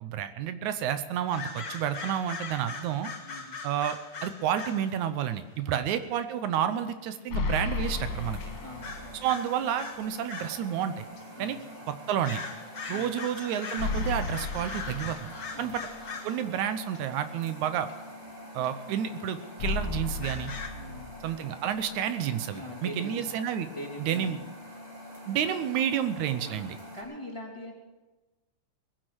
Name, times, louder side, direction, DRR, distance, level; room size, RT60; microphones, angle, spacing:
voice 1, 0.0-3.1 3.6-8.4 9.2-11.1 11.4-11.6 12.1-12.4 12.9-15.3 15.6-15.8 16.2-17.9 18.5-20.5 21.2-23.7 24.0-24.4 25.3-26.8, right 9 dB, 80° right, 10 dB, 2.2 m, -30 dB
sound 1, 1.3-4.9 6.0-6.1 7.7-7.8 8.4-8.5 8.8-10.6 11.2-11.3 12.2-16.4 16.9-17.0 17.8-17.9 18.6-18.7 19.3-19.4 20.2-20.7, left 4 dB, 35° left, 1.8 m, -40 dB
voice 2, 3.2-3.6 5.6-5.9 8.6-9.3 11.4-11.7 12.9-13.2 15.5-15.8 20.7-21.2 22.5-24.5 25.5-25.6 26.4-27.7, left 1 dB, 10° left, -2 dB, 2.5 m, -43 dB
sound 2, 7.3-9.3 9.7-9.8 13.8-15.8 19.6-21.6, left 4 dB, 80° left, 2.5 m, -33 dB
sound 3, 7.8-27.0, equal, 60° right, 5.7 m, -46 dB
20.0 x 10.5 x 6.2 m, 1.2 s
omnidirectional pair, 3.4 m